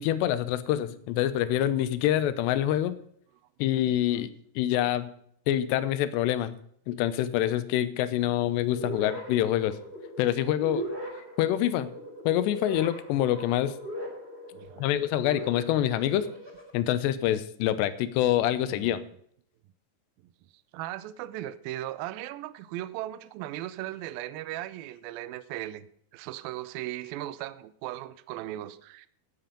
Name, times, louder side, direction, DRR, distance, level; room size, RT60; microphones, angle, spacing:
voice 1, 0.0-3.0 3.6-4.3 4.6-5.1 5.5-6.6 6.9-9.8 10.2-10.8 11.4-11.9 12.3-13.7 14.8-16.3 16.7-19.0, left 12 dB, 80° left, 2.9 m, -26 dB
sound 1, 8.7-16.7, equal, 15° right, 2.7 m, -39 dB
voice 2, 14.5-14.9 16.1-16.3 18.7-19.0 20.7-25.9 26.1-29.1, right 14 dB, 85° right, 2.1 m, -37 dB
17.0 x 7.8 x 5.2 m
omnidirectional pair, 5.0 m